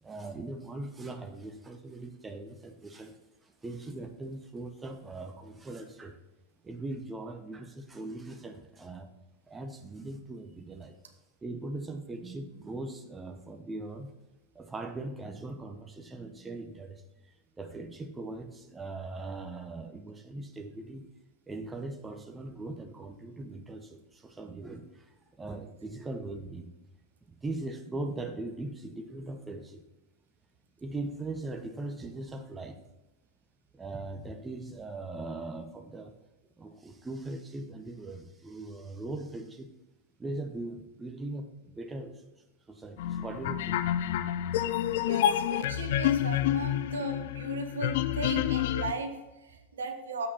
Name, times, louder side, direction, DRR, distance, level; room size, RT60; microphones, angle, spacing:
voice 1, 0.0-6.2 6.6-9.1 9.5-11.0 11.4-14.1 14.5-21.0 21.5-26.7 27.3-29.8 30.8-32.8 33.7-36.2 36.6-39.7 40.2-42.3 42.7-43.8, right 2 dB, 15° right, 6 dB, 0.7 m, -40 dB
sound 1, 43.0-48.9, left 11 dB, 55° left, 0.4 m, -28 dB
voice 2, 45.0-50.3, right 3 dB, 65° right, 6 dB, 1.1 m, -37 dB
7.4 x 6.2 x 5.5 m, 1.0 s
figure-of-eight pair, 90°, 0 cm